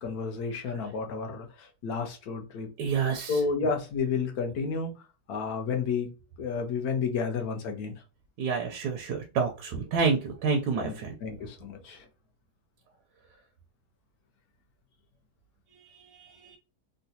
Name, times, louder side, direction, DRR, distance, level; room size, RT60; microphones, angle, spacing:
voice 1, 0.0-2.7 3.3-4.9 5.3-6.1 6.4-7.9 10.8-10.9 11.2-12.0, left 5 dB, 65° left, 1.2 m, -31 dB
voice 2, 2.8-3.4 8.4-11.1 15.7-16.6, right 5 dB, 90° right, 1.3 m, -29 dB
3.9 x 2.2 x 2.7 m
omnidirectional pair, 1.8 m